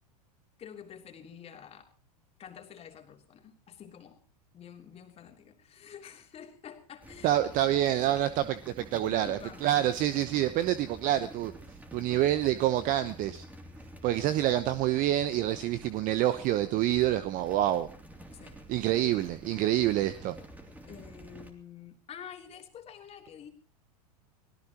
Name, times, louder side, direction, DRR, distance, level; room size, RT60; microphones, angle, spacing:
voice 1, 0.6-1.9 2.4-4.2 4.5-7.7 9.0-9.9 18.3-18.6 20.9-23.5, left 8 dB, 30° left, 4 dB, 3.2 m, -48 dB
sound 1, 7.0-21.5, right 1 dB, 10° right, 3.0 m, -49 dB
voice 2, 7.2-11.5 11.9-13.4 14.0-17.9 18.7-20.4, right 13 dB, 40° right, 13 dB, 1.0 m, -27 dB
25.0 x 17.5 x 3.0 m, 0.34 s
hypercardioid pair, 105°, 21 cm